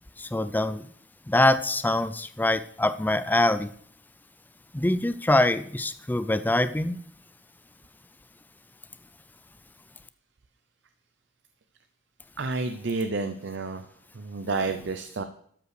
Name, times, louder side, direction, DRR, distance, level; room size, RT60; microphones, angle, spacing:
voice 1, 0.2-0.8 1.3-3.7 4.7-7.0, left 1 dB, 10° left, 12 dB, 0.4 m, -24 dB
voice 2, 12.4-13.9 14.1-15.2, right 3 dB, 65° right, 9 dB, 0.6 m, -30 dB
12.5 x 5.4 x 6.6 m, 0.65 s
head